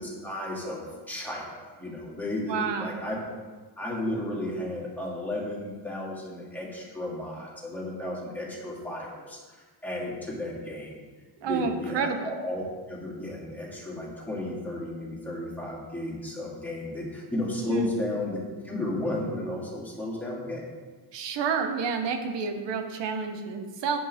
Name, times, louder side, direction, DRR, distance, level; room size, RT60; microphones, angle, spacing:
voice 1, 0.0-3.2 3.8-11.0 11.4-20.6, left 1 dB, 5° left, -5 dB, 2.4 m, -34 dB
voice 2, 2.5-3.0 11.4-12.3 17.7-17.9 21.1-24.0, right 5 dB, 65° right, 6 dB, 1.0 m, -29 dB
9.6 x 5.3 x 3.5 m, 1.4 s
cardioid pair, 105°, 45 cm